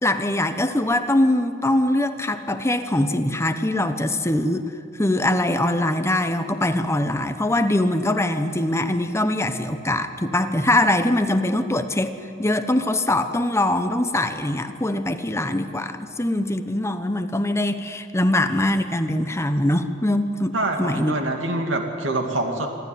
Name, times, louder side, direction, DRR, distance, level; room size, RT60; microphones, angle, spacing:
voice 1, 0.0-4.7 5.0-21.1, left 1 dB, 15° left, 8 dB, 1.0 m, -22 dB
voice 2, 20.5-22.7, right 2 dB, 80° right, 3 dB, 2.6 m, -25 dB
26.0 x 12.5 x 9.5 m, 2.5 s
head